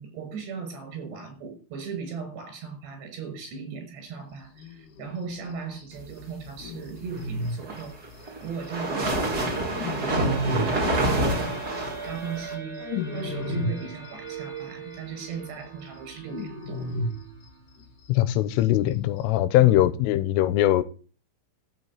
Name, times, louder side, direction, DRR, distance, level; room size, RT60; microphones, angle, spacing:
voice 1, 0.0-8.0 8.4-9.5 9.8-10.9 12.0-17.0 19.6-19.8, right 5 dB, 60° right, 8.4 m, -37 dB
sound 1, 4.6-5.2 5.5-5.6 5.8-5.9 6.1-6.2 6.5-9.0 9.2-11.4 11.7-14.6 14.9-15.0 15.3-18.1 18.3-18.4 18.6-19.4, left 2 dB, 55° left, 2.8 m, -33 dB
sound 2, 7.4-12.5, right 1 dB, 20° right, 3.1 m, -27 dB
sound 3, 10.3-17.9, right 4 dB, 5° right, 3.6 m, -40 dB
voice 2, 18.1-20.8, left 14 dB, 90° left, 3.6 m, -21 dB
13.5 x 6.4 x 9.6 m
omnidirectional pair, 5.6 m